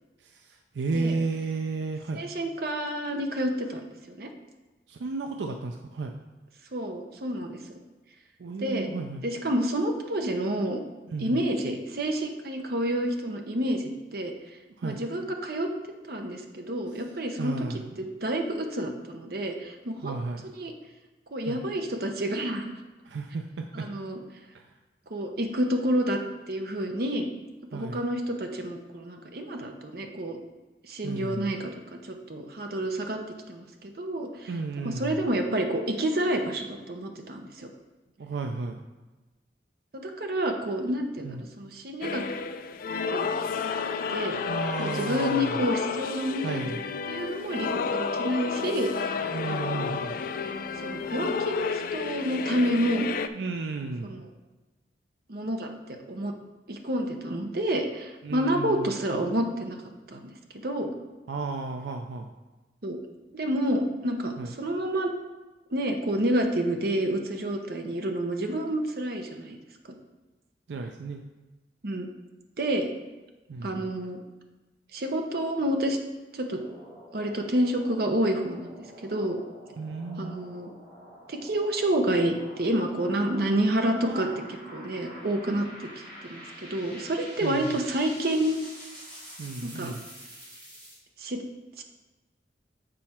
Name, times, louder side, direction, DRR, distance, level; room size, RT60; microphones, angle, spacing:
voice 1, 0.2-2.2 4.9-6.1 8.4-9.2 11.1-11.4 14.8-15.0 17.4-18.1 20.0-20.4 21.5-21.6 23.0-23.9 24.5-24.7 27.7-28.0 31.0-31.6 34.5-35.3 38.2-38.8 41.2-41.5 44.5-45.6 46.4-46.9 49.3-50.2 53.3-54.2 58.2-58.9 61.3-62.3 64.4-64.5 70.7-71.2 73.5-73.9 79.8-80.4 84.0-84.4 84.6-84.9 87.4-87.8 89.4-90.0, right 3 dB, 80° right, 4 dB, 0.4 m, -33 dB
voice 2, 2.2-4.3 6.7-7.6 8.6-8.9 9.2-10.8 11.2-14.3 14.8-15.7 16.1-17.5 18.2-20.1 20.4-20.7 21.3-22.7 23.7-24.2 25.1-26.2 26.5-27.3 27.7-30.4 30.8-33.2 33.5-34.5 34.8-37.7 39.9-42.2 43.1-43.3 44.1-44.4 44.8-46.6 47.1-49.2 49.4-49.9 50.8-53.1 54.0-54.2 55.3-56.3 56.7-59.8 60.1-60.2 60.6-60.9 62.8-63.0 63.3-65.1 65.7-69.6 71.8-72.1 72.6-72.9 73.6-74.2 74.9-76.0 76.3-76.6 77.1-79.4 80.2-80.7 81.3-85.9 86.3-88.6 89.6-89.9 91.2-91.4 91.8-91.9, right 1 dB, 60° right, 4 dB, 0.8 m, -29 dB
sound 1, 42.0-53.3, left 5 dB, 50° left, 0.3 m, -31 dB
sound 2, 76.4-91.0, equal, 25° right, 1.9 m, -47 dB
7.7 x 4.3 x 4.3 m, 1.1 s
head